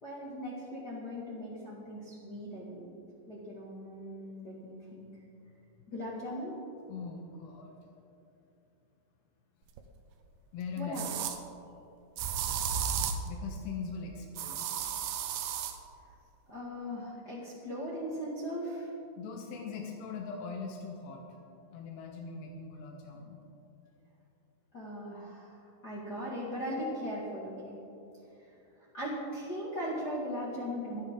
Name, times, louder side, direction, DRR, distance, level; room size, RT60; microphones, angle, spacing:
voice 1, 0.0-3.0 3.3-5.2 5.9-6.6 10.8-11.0 16.5-18.9 24.7-27.8 28.8-31.0, equal, 45° left, -6 dB, 1.3 m, -39 dB
voice 2, 6.9-7.8 10.5-11.0 13.3-14.7 19.2-21.2 21.7-23.4, left 5 dB, 75° left, 0 dB, 3.0 m, -41 dB
sound 1, 9.8-9.9 10.9-11.4 12.2-13.3 14.4-15.8, right 8 dB, 85° right, 1.9 m, -33 dB
25.5 x 9.8 x 3.7 m, 2.8 s
omnidirectional pair, 5.2 m